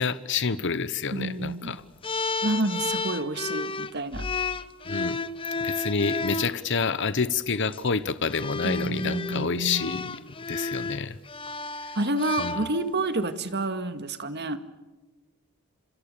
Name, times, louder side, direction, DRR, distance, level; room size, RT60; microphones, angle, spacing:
voice 1, 0.0-1.8 4.9-5.2 5.6-11.2 12.4-12.6, left 5 dB, 55° left, 14 dB, 0.9 m, -28 dB
voice 2, 1.1-1.8 2.4-4.3 8.6-10.0 11.9-14.6, right 2 dB, 50° right, 10 dB, 1.9 m, -29 dB
sound 1, 2.0-6.5 7.5-7.8 8.3-13.1, left 3 dB, 25° left, 0.9 m, -32 dB
27.5 x 25.0 x 6.9 m, 1.1 s
head